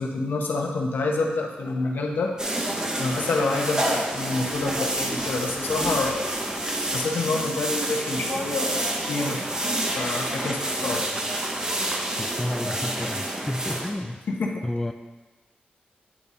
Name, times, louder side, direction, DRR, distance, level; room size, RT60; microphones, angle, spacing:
voice 1, 0.0-2.5 3.0-6.3 6.9-9.5 9.9-11.1 14.3-14.5, left 3 dB, 75° left, 2 dB, 1.0 m, -27 dB
sound 1, 2.4-13.9, right 1 dB, 20° right, 0.9 m, -28 dB
voice 2, 12.2-14.2 14.6-14.9, left 1 dB, 10° left, 7 dB, 0.3 m, -30 dB
8.7 x 4.2 x 4.9 m, 1.3 s
wide cardioid pair, 110°, 3 cm